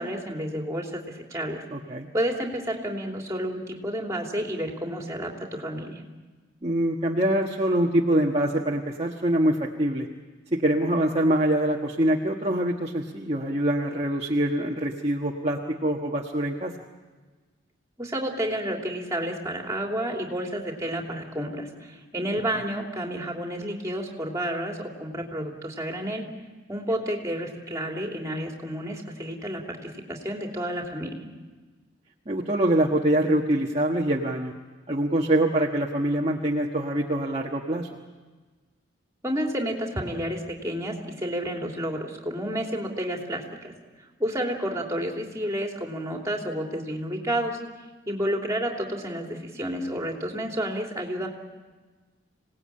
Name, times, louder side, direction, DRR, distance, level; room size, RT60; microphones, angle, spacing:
voice 1, 0.0-1.6 2.1-6.0 18.0-26.2 26.7-31.2 39.2-43.7 44.2-47.6 48.1-51.3, equal, 15° right, 1 dB, 3.0 m, -30 dB
voice 2, 1.7-2.1 6.6-10.1 10.5-16.7 32.3-34.5 34.9-37.9, right 1 dB, 30° right, -1 dB, 1.4 m, -24 dB
26.5 x 18.5 x 8.7 m, 1.3 s
head